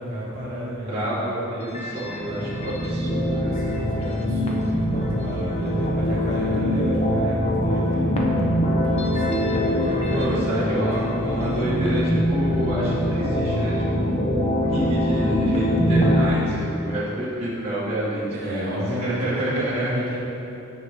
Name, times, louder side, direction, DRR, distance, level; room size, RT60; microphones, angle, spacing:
voice 1, 0.0-1.2 3.1-8.3 9.1-11.8 18.2-20.2, equal, 45° right, -7 dB, 1.7 m, -31 dB
voice 2, 0.9-3.5 10.1-14.3 14.7-18.7 19.0-19.9, right 1 dB, 30° right, -9 dB, 1.6 m, -28 dB
sound 1, 1.6-16.3, equal, 30° left, 0.8 m, -23 dB
13.5 x 4.7 x 3.4 m, 2.8 s
head